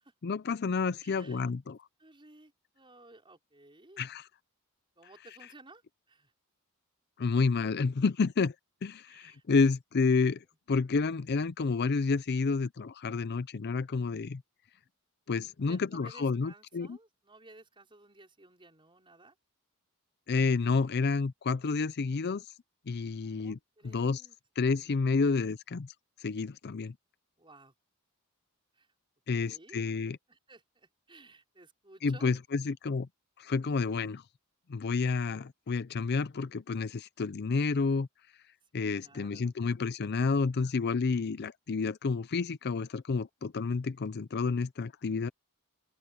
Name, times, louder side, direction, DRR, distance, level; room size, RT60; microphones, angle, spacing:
voice 1, 0.2-1.8 4.0-4.2 7.2-8.5 8.8-14.4 15.3-17.0 20.3-22.4 22.9-23.6 23.8-24.2 24.6-25.9 26.2-26.9 29.3-30.2 32.0-33.1 33.4-34.2 34.7-38.1 38.7-45.3, left 4 dB, 50° left, 0.5 m, -30 dB
voice 2, 1.0-1.5 2.0-4.2 5.0-5.8 6.1-6.3 9.1-9.4 15.6-19.4 23.2-24.4 27.4-27.7 28.7-28.9 29.3-29.8 30.3-32.4 38.8-39.5, right 2 dB, 25° right, 5.3 m, -56 dB
open air
head